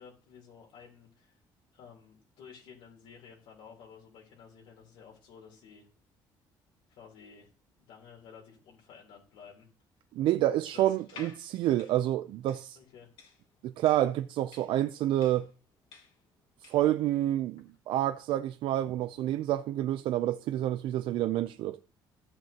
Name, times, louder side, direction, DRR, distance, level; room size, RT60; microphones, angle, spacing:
voice 1, 0.0-1.4 1.7-5.9 6.9-7.5 7.8-9.7 10.7-11.3 12.8-13.1, left 6 dB, 80° left, 3.6 m, -53 dB
voice 2, 10.1-12.8 13.6-15.5 16.7-21.8, right 13 dB, 75° right, 0.5 m, -28 dB
sound 1, 11.0-16.9, left 5 dB, 65° left, 2.3 m, -53 dB
14.5 x 7.7 x 2.9 m
cardioid pair, 115°, 9 cm